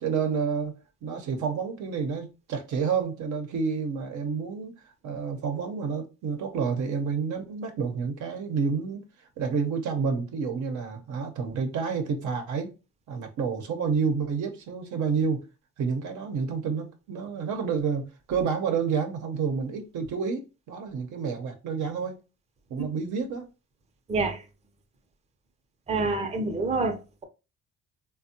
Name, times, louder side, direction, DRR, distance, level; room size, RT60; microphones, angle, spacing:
voice 1, 0.0-4.7 5.0-9.0 9.4-12.7 13.1-15.4 15.8-22.2 22.7-23.5, right 5 dB, 75° right, 0.7 m, -29 dB
voice 2, 25.9-27.0, right 3 dB, 20° right, 0.5 m, -26 dB
3.4 x 2.2 x 2.6 m
cardioid pair, 90°, 30 cm